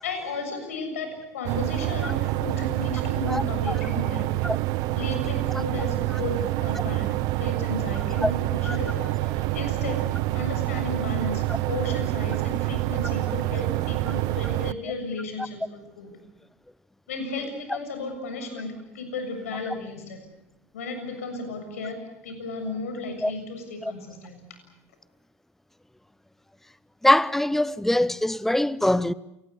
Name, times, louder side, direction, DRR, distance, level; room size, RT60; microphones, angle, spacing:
voice 1, 0.0-4.4 5.0-10.1 10.3-16.1 17.1-20.2 20.7-24.4, left 3 dB, 75° left, 7.1 m, -34 dB
sound 1, 1.4-14.7, right 19 dB, 55° right, 0.9 m, -27 dB
voice 2, 3.3-3.7 4.4-4.6 8.2-8.3 8.7-8.8 23.2-23.3 23.8-23.9 27.0-29.1, left 1 dB, 5° left, 0.8 m, -23 dB
28.0 x 19.5 x 8.3 m
hypercardioid pair, 80°, 8 cm